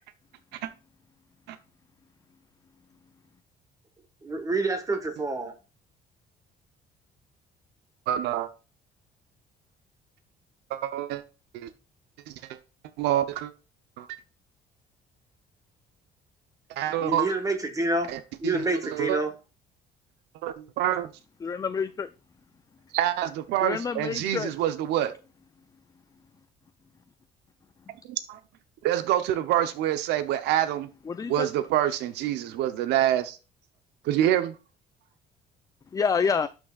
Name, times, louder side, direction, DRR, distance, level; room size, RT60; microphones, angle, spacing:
voice 1, 4.2-5.5 17.0-18.1 18.4-19.3, right 2 dB, 20° right, 1.4 m, -27 dB
voice 2, 8.1-8.5 10.7-11.2 11.5-11.7 13.0-13.5 14.0-14.1 16.7-17.3 18.1-19.2 20.4-21.1 22.9-25.1 28.1-28.4 28.8-30.9 31.3-33.4 34.0-34.6, right 12 dB, 85° right, 0.8 m, -26 dB
voice 3, 21.4-22.1 23.6-24.5 31.1-31.5 35.9-36.5, left 6 dB, 20° left, 0.4 m, -27 dB
11.5 x 6.3 x 2.4 m
cardioid pair, 110°, 17 cm